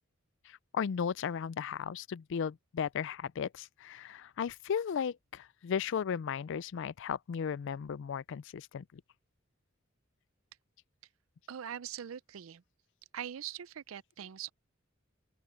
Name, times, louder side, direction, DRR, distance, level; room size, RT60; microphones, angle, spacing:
voice 1, 0.5-9.0, left 7 dB, 65° left, 0.4 m, -35 dB
voice 2, 11.5-12.6 13.1-14.5, right 9 dB, 85° right, 0.5 m, -42 dB
open air
head